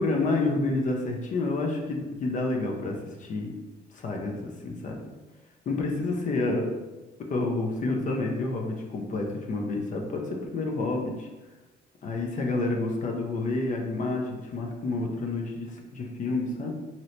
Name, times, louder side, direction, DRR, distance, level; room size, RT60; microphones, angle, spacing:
voice 1, 0.0-3.5 3.9-5.1 5.7-6.7 7.3-11.3 12.0-16.7, left 2 dB, 45° left, 1 dB, 0.5 m, -29 dB
2.8 x 2.7 x 3.1 m, 1.1 s
cardioid pair, 115°, 18 cm